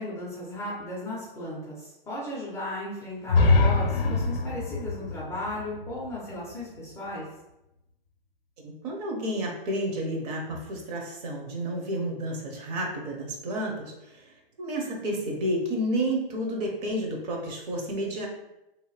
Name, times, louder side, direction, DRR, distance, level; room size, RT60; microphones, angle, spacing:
voice 1, 0.0-7.3, left 1 dB, 10° left, -7 dB, 0.4 m, -35 dB
sound 1, 3.3-7.1, left 3 dB, 80° left, 0.5 m, -25 dB
voice 2, 8.6-14.2 14.6-18.3, right 1 dB, 45° right, 1 dB, 0.7 m, -31 dB
2.7 x 2.2 x 3.1 m, 0.92 s
hypercardioid pair, 120°, 29 cm